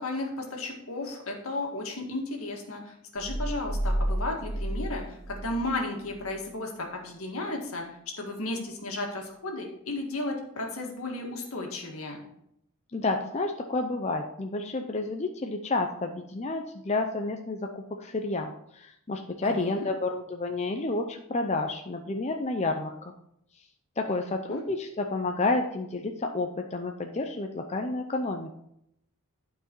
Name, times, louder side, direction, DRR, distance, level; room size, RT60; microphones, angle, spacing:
voice 1, 0.0-7.8 8.2-12.2 19.4-19.9 24.1-24.6, left 2 dB, 75° left, 1 dB, 1.9 m, -34 dB
sound 1, 3.2-5.7 6.1-6.2, equal, 10° right, 1.4 m, -31 dB
voice 2, 12.9-23.1 24.0-28.5, left 2 dB, 30° left, 4 dB, 0.5 m, -30 dB
12.0 x 4.7 x 4.5 m, 0.76 s
head